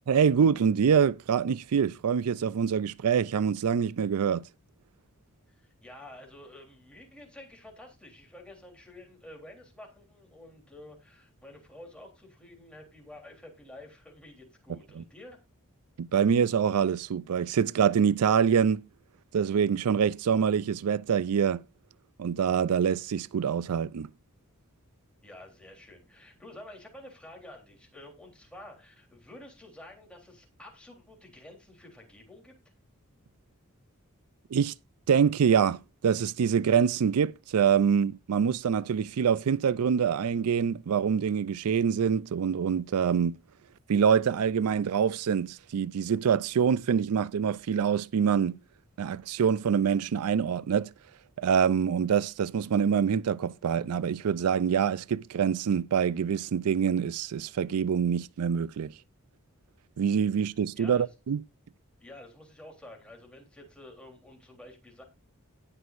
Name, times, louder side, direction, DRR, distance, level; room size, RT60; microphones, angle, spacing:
voice 1, 0.1-4.5 15.0-15.1 16.0-18.9 19.3-21.6 22.2-24.1 34.5-34.7 35.1-43.4 43.9-48.6 49.0-50.9 51.4-58.9 60.0-61.4, right 7 dB, 90° right, 0.4 m, -25 dB
voice 2, 5.5-15.4 25.2-32.6 60.7-61.0 62.0-65.0, left 1 dB, 5° left, 3.4 m, -49 dB
18.5 x 6.3 x 2.5 m
head